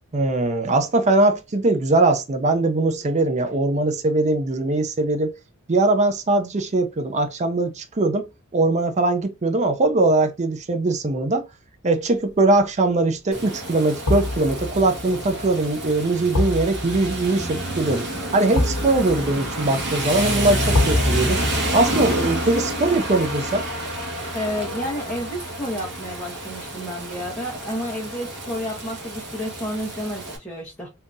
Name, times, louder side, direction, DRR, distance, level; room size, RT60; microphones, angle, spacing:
voice 1, 0.1-5.3 5.7-8.3 8.5-11.4 11.8-18.1 18.3-21.4 21.7-23.6, right 2 dB, 30° right, 0.5 m, -21 dB
sound 1, 12.3-12.6 14.1-25.1 25.4-25.5, left 1 dB, 85° left, 1.0 m, -30 dB
Rain, 13.3-30.4, right 1 dB, 50° right, 1.3 m, -28 dB
voice 2, 24.3-30.9, equal, 5° left, 1.0 m, -30 dB
3.6 x 2.8 x 2.6 m
head